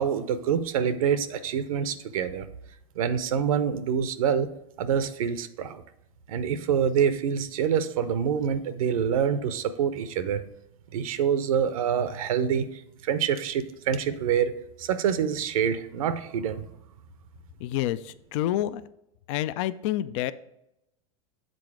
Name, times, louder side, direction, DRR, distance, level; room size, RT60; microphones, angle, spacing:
voice 1, 0.0-2.5 3.0-4.5 4.8-5.8 6.3-10.4 10.9-14.5 14.8-16.7, right 8 dB, 75° right, 12 dB, 0.6 m, -26 dB
voice 2, 17.6-18.9 19.3-20.3, left 13 dB, 60° left, 16 dB, 0.4 m, -28 dB
7.6 x 4.0 x 4.7 m, 0.84 s
hypercardioid pair, 100°, 18 cm